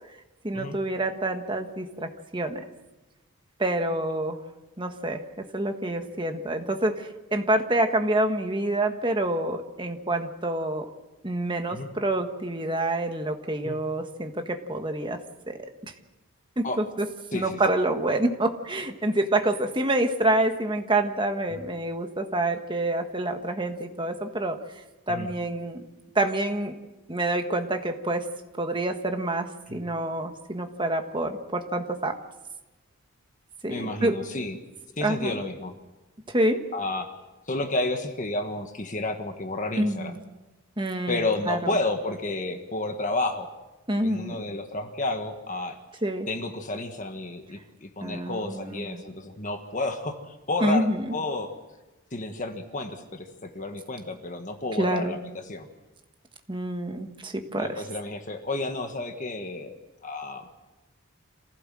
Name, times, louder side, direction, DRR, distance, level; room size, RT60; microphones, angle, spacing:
voice 1, 0.4-2.6 3.6-4.4 4.8-10.9 11.2-15.2 15.5-15.9 16.6-17.1 17.3-24.6 25.1-25.8 26.1-26.8 27.1-28.3 28.6-32.2 33.6-34.2 35.0-35.4 36.3-36.6 39.8-40.1 40.8-41.7 43.9-44.3 46.0-46.3 48.0-49.0 50.6-51.1 54.8-55.2 56.5-57.8, right 1 dB, 20° right, 6 dB, 1.5 m, -27 dB
voice 2, 17.3-17.7 21.5-21.6 25.1-25.3 29.7-29.8 33.7-34.6 35.0-35.7 36.7-37.1 37.5-40.2 41.1-43.5 44.0-45.8 46.3-51.5 52.1-55.2 55.4-55.7 57.5-59.7 60.0-60.5, left 2 dB, 35° left, 6 dB, 1.5 m, -31 dB
26.5 x 16.0 x 7.7 m, 1.1 s
head